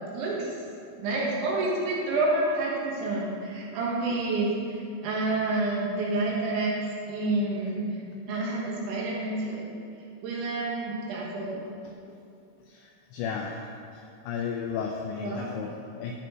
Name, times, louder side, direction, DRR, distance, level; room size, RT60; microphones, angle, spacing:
voice 1, 0.1-0.5 1.0-6.8 7.1-8.0 8.3-9.7 10.2-11.7 15.2-15.5, right 2 dB, 70° right, -4 dB, 3.7 m, -28 dB
voice 2, 12.7-13.6 13.9-16.2, left 6 dB, 85° left, 1 dB, 2.6 m, -34 dB
13.0 x 8.8 x 3.2 m, 2.5 s
omnidirectional pair, 5.9 m